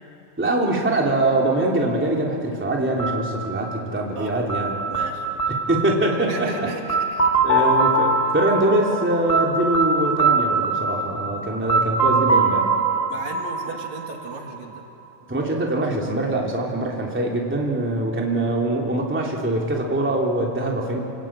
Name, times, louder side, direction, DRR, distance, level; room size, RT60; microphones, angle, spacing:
voice 1, 0.4-4.7 5.7-6.7 7.4-12.7 15.3-21.0, right 1 dB, 5° right, -2 dB, 2.6 m, -23 dB
sound 1, 3.0-14.8, right 3 dB, 15° left, 1.6 m, -23 dB
voice 2, 4.2-5.6 6.1-7.3 13.1-14.8, right 3 dB, 70° right, 1 dB, 3.6 m, -37 dB
29.0 x 20.0 x 8.9 m, 2.8 s
omnidirectional pair, 3.5 m